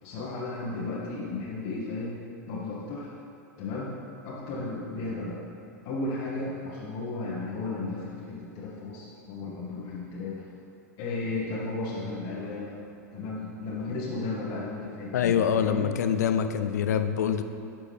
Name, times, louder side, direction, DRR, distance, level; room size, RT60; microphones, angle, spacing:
voice 1, 0.0-2.2 2.5-3.1 3.6-3.9 4.2-5.4 5.8-10.5 11.0-12.8 13.1-15.9, left 3 dB, 50° left, -6 dB, 1.2 m, -34 dB
voice 2, 15.1-17.4, left 8 dB, 75° left, 8 dB, 0.5 m, -25 dB
9.9 x 6.1 x 3.4 m, 2.5 s
hypercardioid pair, 95°, 9 cm